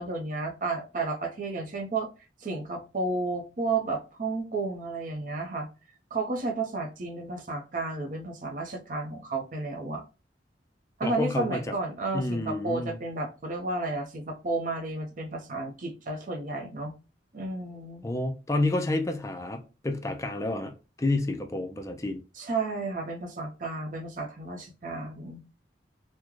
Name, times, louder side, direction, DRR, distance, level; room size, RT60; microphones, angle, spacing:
voice 1, 0.0-2.1 2.4-5.7 6.1-10.0 11.0-16.9 17.3-18.0 22.4-25.4, right 3 dB, 45° right, 0.6 m, -32 dB
voice 2, 11.0-11.6 12.1-13.0 18.0-20.7 21.0-22.2, left 2 dB, 15° left, 0.4 m, -29 dB
3.6 x 2.1 x 3.0 m
head